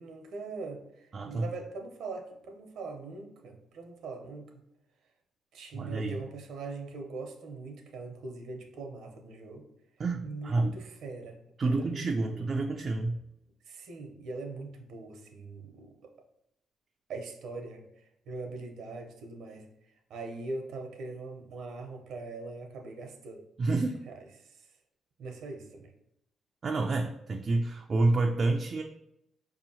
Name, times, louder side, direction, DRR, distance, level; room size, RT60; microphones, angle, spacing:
voice 1, 0.0-4.5 5.5-9.7 10.2-11.4 11.7-12.4 13.6-16.1 17.1-19.7 20.1-23.4 23.7-23.8 24.1-24.7 25.2-25.9, right 3 dB, 75° right, 3 dB, 0.7 m, -42 dB
voice 2, 1.1-1.5 5.7-6.2 10.0-10.8 11.6-13.2 23.6-24.0 26.6-28.8, right 2 dB, 45° right, 3 dB, 0.3 m, -29 dB
4.7 x 2.8 x 2.7 m, 0.80 s
cardioid pair, 90°, 0 cm